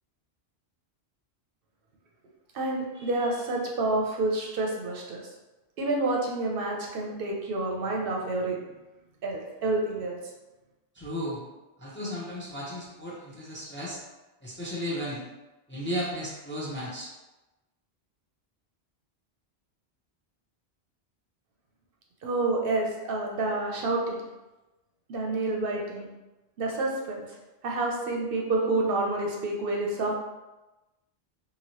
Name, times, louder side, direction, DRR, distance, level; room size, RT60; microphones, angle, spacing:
voice 1, 2.5-5.2 5.8-8.6 9.2-10.2 22.2-24.2 25.1-26.1 26.6-27.2 27.6-30.1, right 2 dB, 65° right, -1 dB, 0.7 m, -28 dB
voice 2, 10.9-11.4 11.8-14.0 14.4-15.2 15.7-17.1, equal, 15° left, -6 dB, 0.5 m, -34 dB
2.9 x 2.6 x 2.8 m, 1.1 s
omnidirectional pair, 1.1 m